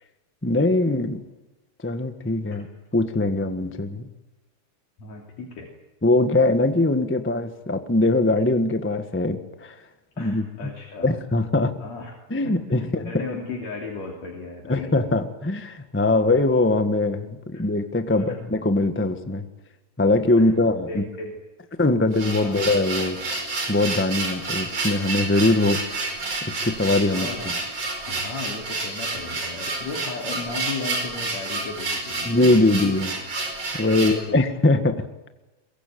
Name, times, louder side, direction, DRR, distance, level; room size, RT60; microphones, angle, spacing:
voice 1, 0.4-1.2 1.8-2.7 2.9-4.1 6.0-9.8 10.2-10.4 11.0-11.7 12.3-13.2 14.7-19.4 20.0-21.0 21.8-23.2 23.7-26.1 26.4-27.5 32.2-33.1 33.7-35.1, left 2 dB, 10° left, 8 dB, 0.6 m, -22 dB
voice 2, 5.0-5.7 10.2-11.1 11.8-12.1 12.4-14.9 17.5-17.6 18.1-18.4 20.4-20.5 20.9-21.4 22.4-22.7 27.1-27.6 28.1-32.9 34.0-34.4, left 3 dB, 65° left, -1 dB, 4.3 m, -35 dB
sound 1, 21.9-34.2, right 3 dB, 55° right, 5.9 m, -30 dB
22.5 x 22.5 x 9.3 m, 1.1 s
omnidirectional pair, 3.3 m